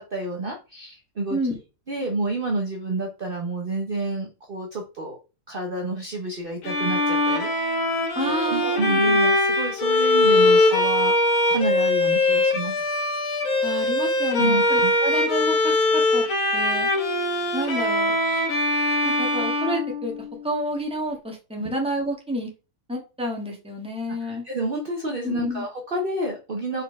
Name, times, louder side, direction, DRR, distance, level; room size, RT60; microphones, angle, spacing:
voice 1, 0.0-1.4 1.9-5.2 5.5-7.8 8.2-11.1 11.5-12.8 14.4-14.9 21.6-21.7 24.2-26.8, right 2 dB, 45° right, 1 dB, 1.1 m, -29 dB
Bowed string instrument, 6.6-20.5, left 2 dB, 70° left, 1.7 m, -22 dB
voice 2, 8.1-9.2 13.6-16.2 16.5-16.9 17.5-18.1 19.0-20.1 20.4-22.5 22.9-24.4 25.2-25.7, equal, 5° right, 0 dB, 1.6 m, -29 dB
4.5 x 4.5 x 4.6 m, 0.31 s
omnidirectional pair, 1.5 m